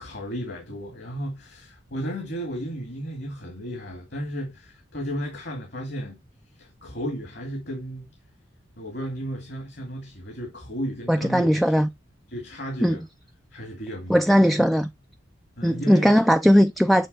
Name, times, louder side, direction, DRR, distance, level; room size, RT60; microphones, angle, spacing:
voice 1, 0.0-6.2 6.6-8.1 8.8-11.6 12.3-13.0 13.5-14.2 14.6-14.7 15.6-16.2, equal, 55° left, 2.2 m, -34 dB
voice 2, 11.1-11.9 12.8-13.0 14.1-14.9 15.6-17.1, equal, ahead, 0.3 m, -18 dB
8.9 x 3.3 x 4.1 m
head